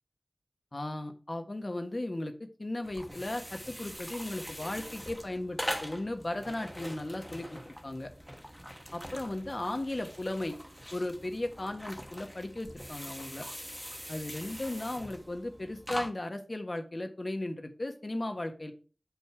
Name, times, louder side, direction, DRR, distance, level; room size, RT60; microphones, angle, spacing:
voice 1, 0.7-8.1 8.9-10.6 10.9-13.5 14.1-18.7, left 1 dB, 50° left, 6 dB, 1.4 m, -36 dB
sound 1, 2.8-16.1, equal, ahead, 1.2 m, -43 dB
8.1 x 5.5 x 4.7 m, 0.36 s
wide cardioid pair, 45°, 0 cm